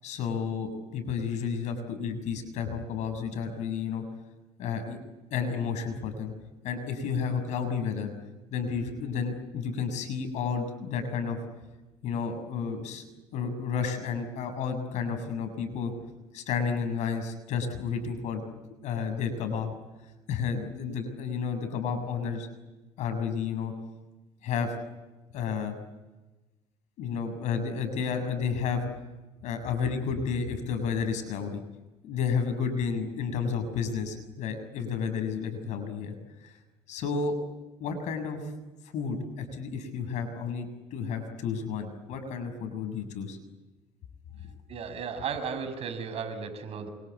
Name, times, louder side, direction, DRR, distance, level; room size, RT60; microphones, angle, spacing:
voice 1, 0.0-4.0 4.6-5.0 5.3-6.3 6.6-8.1 8.5-11.4 12.0-13.0 13.3-15.9 16.3-18.4 18.8-19.7 20.3-22.5 23.0-23.7 24.4-24.7 25.3-25.7 27.0-28.8 29.4-31.6 32.0-36.1 36.4-36.6 36.9-37.3 37.8-38.4 38.9-43.4 44.3-44.5, left 6 dB, 75° left, 7 dB, 6.8 m, -31 dB
voice 2, 44.7-46.9, right 6 dB, 55° right, 8 dB, 5.9 m, -35 dB
28.0 x 24.5 x 8.5 m, 1.1 s
cardioid pair, 100°, 12 cm